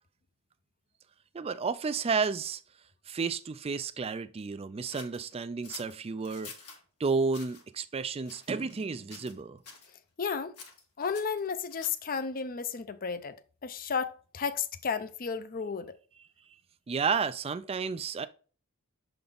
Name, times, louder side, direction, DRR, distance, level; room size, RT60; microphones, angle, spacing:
voice 1, 1.3-2.6 3.1-6.5 7.0-9.6 16.9-18.3, right 5 dB, 25° right, 0.4 m, -31 dB
sound 1, 4.9-6.8 7.3-7.6 8.2-8.9 9.1-9.4 9.6-9.9 10.5-12.1, left 5 dB, 75° left, 1.6 m, -48 dB
voice 2, 10.2-10.5 11.0-13.4 13.6-16.0, left 6 dB, 40° left, 0.6 m, -33 dB
6.8 x 3.9 x 3.5 m
head